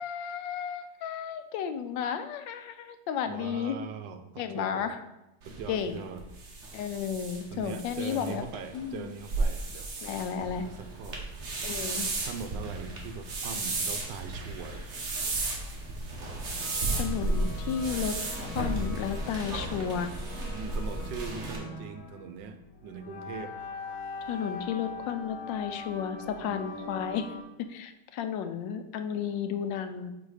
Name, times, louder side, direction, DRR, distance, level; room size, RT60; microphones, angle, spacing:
voice 1, 0.0-3.7 4.4-5.0 5.7-6.0 6.7-8.5 8.7-9.1 10.0-10.7 11.6-12.1 16.9-18.1 18.4-20.1 24.3-27.3 27.7-30.1, left 8 dB, 90° left, 9 dB, 1.3 m, -33 dB
voice 2, 3.3-4.9 5.4-6.2 7.5-9.9 10.7-11.3 12.2-14.9 20.4-23.6 26.4-26.7, right 6 dB, 80° right, 8 dB, 1.3 m, -41 dB
sound 1, 5.4-21.6, right 2 dB, 45° right, 1.1 m, -34 dB
sound 2, 16.6-27.4, left 3 dB, 55° left, 1.1 m, -42 dB
4.9 x 4.1 x 4.7 m, 0.91 s
omnidirectional pair, 1.9 m